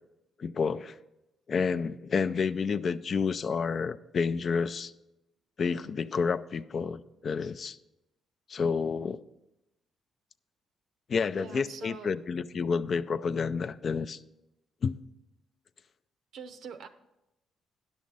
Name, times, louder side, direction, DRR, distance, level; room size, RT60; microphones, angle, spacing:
voice 1, 0.4-0.9 1.5-4.9 5.6-7.8 8.5-9.2 11.1-14.2 14.8-15.0, left 5 dB, 50° left, 13 dB, 0.4 m, -29 dB
voice 2, 11.3-12.1 16.3-16.9, right 5 dB, 75° right, 9 dB, 0.7 m, -44 dB
10.5 x 6.3 x 5.4 m, 0.94 s
cardioid pair, 90°, 0 cm